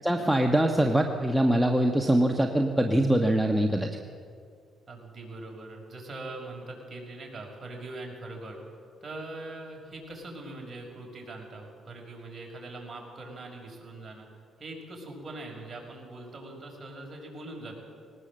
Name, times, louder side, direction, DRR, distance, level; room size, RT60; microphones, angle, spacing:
voice 1, 0.0-3.9, right 1 dB, 5° right, 3 dB, 1.2 m, -23 dB
voice 2, 4.9-8.6 9.0-14.3 14.6-17.8, right 2 dB, 30° right, 0 dB, 6.1 m, -42 dB
20.0 x 19.0 x 7.6 m, 2.3 s
cardioid pair, 90°, 0 cm